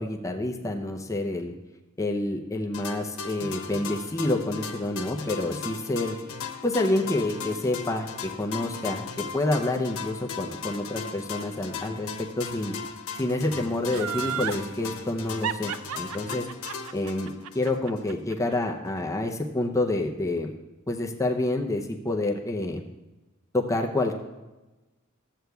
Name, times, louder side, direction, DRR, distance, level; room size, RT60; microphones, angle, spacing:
voice 1, 0.0-1.5 2.0-6.2 6.6-12.7 13.2-16.5 16.9-20.5 20.9-22.8 23.5-24.1, left 2 dB, 15° left, 2 dB, 0.6 m, -28 dB
sound 1, 2.7-18.1, left 5 dB, 90° left, 1.1 m, -37 dB
Laughter, 13.9-14.6 15.4-18.5 18.9-19.0, right 9 dB, 85° right, 0.4 m, -32 dB
14.0 x 7.9 x 2.3 m, 1.1 s
head